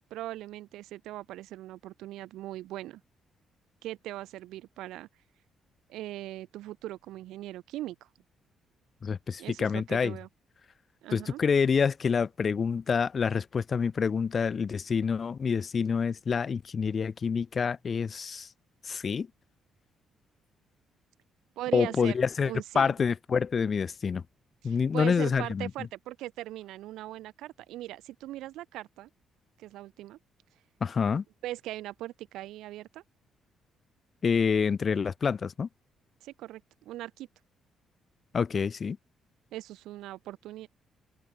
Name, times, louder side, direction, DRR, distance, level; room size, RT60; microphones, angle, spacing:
voice 1, 0.1-3.0 3.8-5.1 5.9-8.1 9.4-10.3 11.0-11.4 21.6-22.2 22.4-22.9 24.6-29.1 29.6-30.2 31.4-33.0 36.2-37.3 39.5-40.7, right 15 dB, 90° right, 2.9 m, -40 dB
voice 2, 9.0-10.2 11.1-18.5 18.8-19.3 21.7-24.2 24.6-25.7 30.8-31.2 34.2-35.7 38.3-39.0, left 6 dB, 45° left, 1.1 m, -27 dB
open air
cardioid pair, 90°, 0 cm